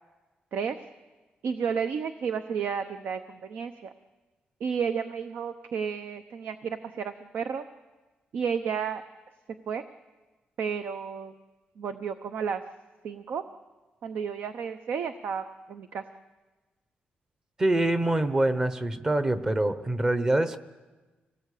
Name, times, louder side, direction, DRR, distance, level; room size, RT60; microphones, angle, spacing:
voice 1, 1.4-3.9 4.6-7.6 8.3-9.0 9.7-9.8 10.6-11.3 11.8-12.6 13.0-13.4 14.0-16.0, right 6 dB, 65° right, 9 dB, 0.8 m, -32 dB
voice 2, 17.6-20.6, right 1 dB, 20° right, 12 dB, 0.9 m, -25 dB
25.0 x 18.5 x 8.4 m, 1.3 s
wide cardioid pair, 175°, 3 cm